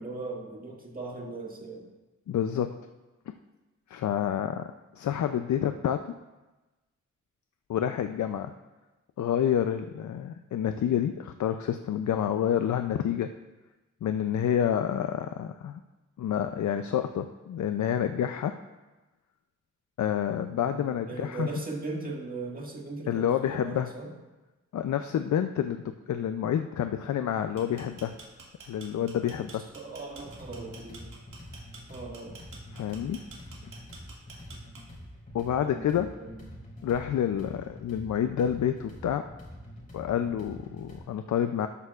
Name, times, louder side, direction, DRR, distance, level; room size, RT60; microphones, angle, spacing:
voice 1, 0.0-1.9 20.5-24.1 29.5-31.1 31.9-32.4 35.5-36.4, right 3 dB, 30° right, -2 dB, 1.8 m, -39 dB
voice 2, 2.3-2.7 3.9-6.1 7.7-8.5 9.2-13.3 14.0-15.8 16.2-18.5 20.0-21.5 23.1-23.9 24.7-28.1 28.7-29.6 32.7-33.2 35.3-36.1 36.8-39.2 39.9-41.7, left 9 dB, 70° left, 8 dB, 0.5 m, -28 dB
sound 1, 27.4-35.1, right 4 dB, 80° right, 2.4 m, -49 dB
sound 2, 30.1-41.0, left 1 dB, 25° left, 3.4 m, -46 dB
12.5 x 11.0 x 2.4 m, 1.1 s
wide cardioid pair, 160°, 30 cm